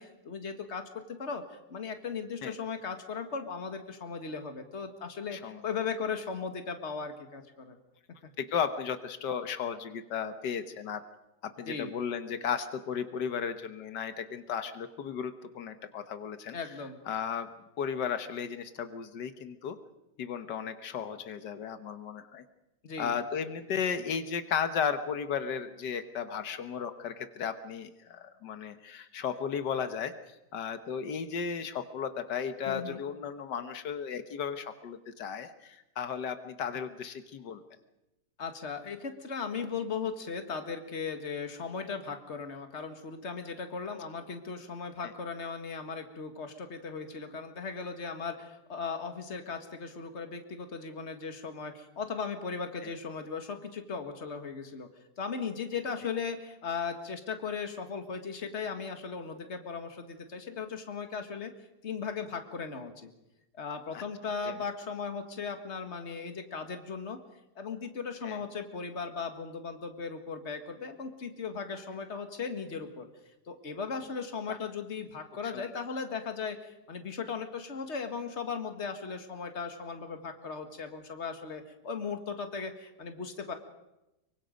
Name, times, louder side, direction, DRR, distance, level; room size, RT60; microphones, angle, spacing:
voice 1, 0.0-7.8 11.7-11.9 16.5-17.0 22.8-23.2 32.7-33.0 38.4-54.9 55.2-61.5 61.8-63.1 63.6-67.2 67.6-73.1 73.5-83.5, left 5 dB, 40° left, 6 dB, 2.0 m, -37 dB
voice 2, 8.4-11.0 11.4-16.6 17.1-17.5 17.8-19.8 20.2-22.4 23.0-30.1 30.5-37.6 63.9-64.0 64.5-64.6 68.2-68.4 74.5-74.6 75.4-75.8, left 7 dB, 90° left, 9 dB, 1.8 m, -35 dB
24.5 x 23.5 x 5.2 m, 0.93 s
omnidirectional pair, 1.8 m